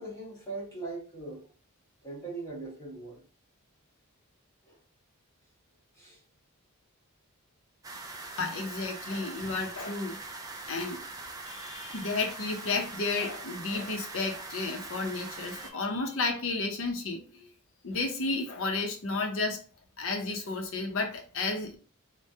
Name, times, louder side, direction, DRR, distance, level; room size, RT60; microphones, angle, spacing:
voice 1, 0.0-1.5 2.0-3.2 4.6-4.8 5.9-6.2, right 3 dB, 15° left, 1.3 m, -40 dB
sound 1, 7.8-15.7, right 3 dB, 15° right, 0.4 m, -42 dB
voice 2, 8.4-10.2 10.7-11.0 11.5-17.5 17.8-19.6 20.0-21.8, left 3 dB, 60° left, 0.7 m, -32 dB
3.3 x 2.2 x 2.7 m
head